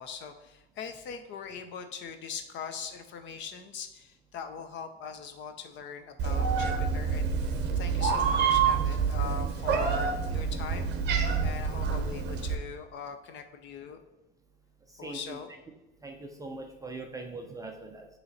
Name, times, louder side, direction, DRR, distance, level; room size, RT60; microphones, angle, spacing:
voice 1, 0.0-7.3 7.8-10.9 11.4-14.0 15.0-15.5, left 6 dB, 40° left, 8 dB, 0.8 m, -41 dB
Meow, 6.2-12.6, right 6 dB, 35° right, 1.0 m, -27 dB
voice 2, 14.9-15.4 16.0-18.1, right 3 dB, 10° right, 2 dB, 0.5 m, -41 dB
7.7 x 3.2 x 4.1 m, 1.0 s
supercardioid pair, 115°, 31 cm